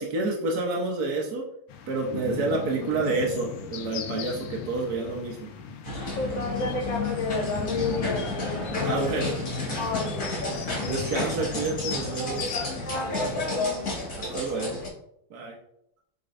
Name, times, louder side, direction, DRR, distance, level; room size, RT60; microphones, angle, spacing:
voice 1, 0.0-1.4 1.9-5.5 8.8-9.3 9.7-9.9 10.9-12.5 14.3-14.8 15.3-15.6, right 3 dB, 55° right, -1 dB, 1.3 m, -29 dB
sound 1, 1.7-13.5, left 7 dB, 85° left, 1.7 m, -37 dB
voice 2, 2.8-3.3 6.2-9.3 9.8-10.6 12.8-13.9, left 3 dB, 65° left, 0 dB, 2.0 m, -32 dB
sound 2, 5.8-14.9, left 2 dB, 40° left, 2.0 m, -32 dB
8.4 x 5.2 x 2.6 m, 0.76 s
omnidirectional pair, 2.4 m